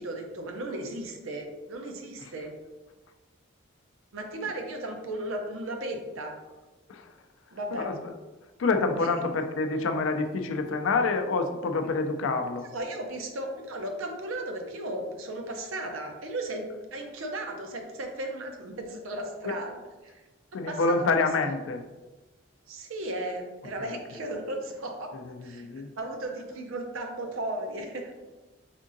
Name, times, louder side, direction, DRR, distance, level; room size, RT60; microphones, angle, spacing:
voice 1, 0.0-2.5 4.1-6.3 7.5-7.9 9.0-9.1 12.7-20.2 20.7-21.3 22.7-25.1 25.4-25.7 26.0-28.1, right 1 dB, 85° right, 3 dB, 0.6 m, -35 dB
voice 2, 7.7-8.1 8.6-12.7 20.5-21.8 23.9-24.0 25.5-25.9, left 3 dB, 75° left, 7 dB, 0.4 m, -27 dB
3.6 x 3.5 x 2.6 m, 1.2 s
head